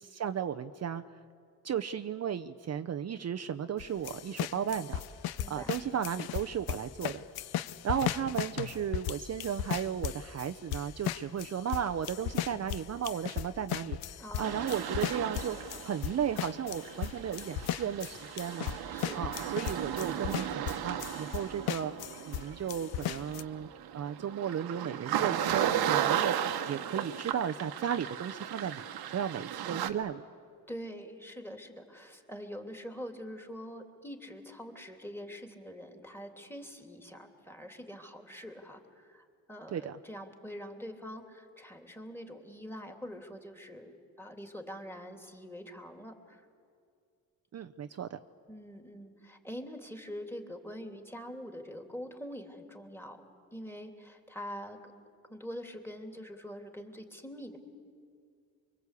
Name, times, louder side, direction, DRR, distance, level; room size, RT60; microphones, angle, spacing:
voice 1, 0.0-1.2 1.6-5.0 5.5-7.2 7.8-14.0 14.4-15.6 15.8-18.7 19.1-21.9 22.3-23.7 23.9-30.3 39.7-40.0 47.5-48.2, right 8 dB, 45° right, 8 dB, 0.8 m, -35 dB
sound 1, 3.8-22.4 22.7-23.4, left 12 dB, 80° left, 0.8 m, -36 dB
voice 2, 5.4-5.8 14.2-14.7 18.9-19.2 30.7-46.4 48.5-53.2 53.5-54.9 55.3-57.6, equal, 5° left, 4 dB, 3.1 m, -44 dB
sound 2, 14.4-29.9, right 10 dB, 80° right, 1.4 m, -35 dB
24.5 x 23.5 x 8.4 m, 2.3 s
cardioid pair, 80°, 37 cm